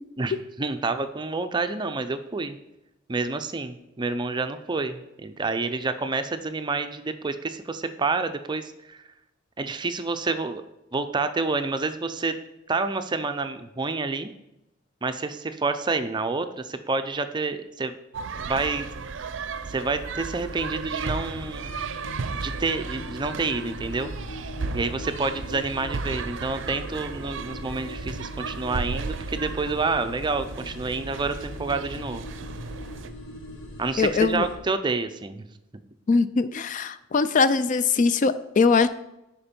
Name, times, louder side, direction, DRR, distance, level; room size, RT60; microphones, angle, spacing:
voice 1, 0.2-2.6 3.1-9.0 9.6-10.6 10.9-12.3 12.7-14.3 15.0-17.9 18.5-18.9 19.7-21.7 22.4-24.1 24.7-32.2 33.8-35.5, right 3 dB, 25° right, 9 dB, 0.5 m, -28 dB
sound 1, 18.1-33.1, right 4 dB, 70° right, 0.5 m, -35 dB
sound 2, 19.1-34.6, left 1 dB, 85° left, 1.4 m, -42 dB
voice 2, 34.0-34.4 36.1-38.9, left 4 dB, 40° left, 13 dB, 0.4 m, -21 dB
10.5 x 4.5 x 4.4 m, 0.89 s
head